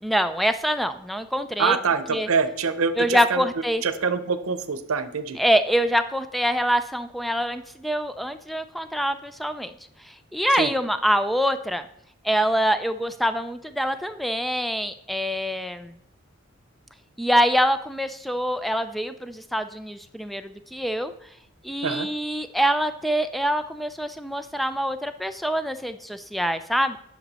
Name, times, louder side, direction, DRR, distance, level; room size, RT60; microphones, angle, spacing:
voice 1, 0.0-1.8 2.1-2.3 3.0-3.8 5.4-9.7 10.0-11.9 12.2-15.9 17.2-21.1 21.6-27.0, equal, ahead, 10 dB, 0.3 m, -25 dB
voice 2, 1.6-3.5 3.8-5.4 10.6-10.7 21.8-22.1, right 5 dB, 85° right, 12 dB, 0.7 m, -25 dB
9.8 x 6.2 x 4.1 m, 0.76 s
head